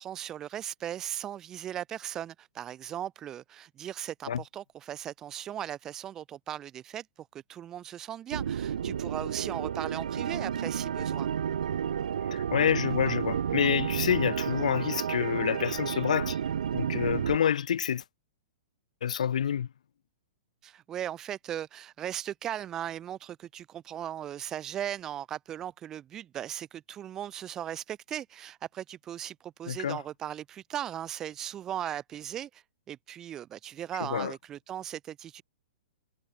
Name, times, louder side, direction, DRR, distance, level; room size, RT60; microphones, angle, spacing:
voice 1, 0.0-11.3 20.6-35.4, right 11 dB, 15° right, 0.9 m, -38 dB
sound 1, 8.3-17.4, right 8 dB, 90° right, 0.6 m, -31 dB
voice 2, 12.3-16.4 16.7-18.0 19.0-19.7 29.7-30.0 34.1-34.3, left 8 dB, 70° left, 0.9 m, -28 dB
hypercardioid pair, 180°, 4 cm